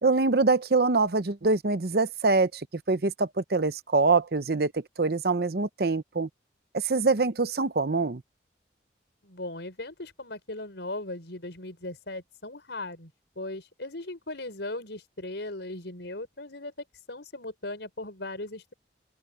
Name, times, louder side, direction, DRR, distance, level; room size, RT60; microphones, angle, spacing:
voice 1, 0.0-6.3 6.7-8.2, right 3 dB, 55° right, 0.8 m, -24 dB
voice 2, 9.2-18.7, left 2 dB, 70° left, 4.9 m, -38 dB
open air
head